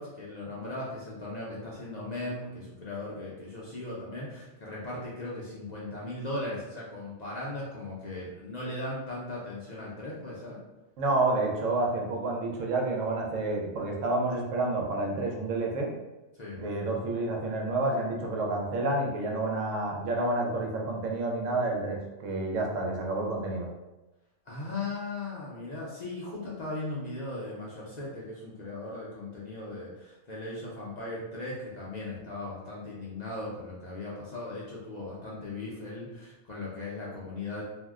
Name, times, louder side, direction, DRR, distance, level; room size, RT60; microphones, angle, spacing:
voice 1, 0.0-10.6 16.4-16.6 24.5-37.6, left 2 dB, 50° left, -6 dB, 0.5 m, -38 dB
voice 2, 11.0-15.9 16.6-23.7, right 2 dB, 90° right, 0 dB, 1.1 m, -29 dB
2.6 x 2.1 x 3.5 m, 1.0 s
omnidirectional pair, 1.3 m